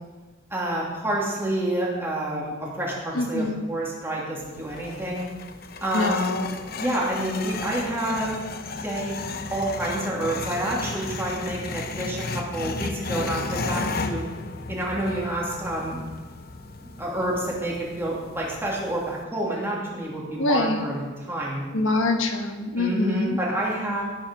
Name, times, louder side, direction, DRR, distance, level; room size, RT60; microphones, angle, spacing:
voice 1, 0.5-5.2 5.8-6.4 6.8-8.4 8.8-9.1 9.5-14.2 14.7-16.0 16.8-21.6 22.8-24.0, right 1 dB, 10° right, -4 dB, 2.9 m, -28 dB
voice 2, 3.1-3.7 5.9-6.5 20.4-20.9 21.7-23.4, left 2 dB, 80° left, 4 dB, 1.3 m, -25 dB
sound 1, 4.4-19.2, left 3 dB, 50° left, 0.8 m, -34 dB
17.0 x 6.4 x 6.5 m, 1.3 s
head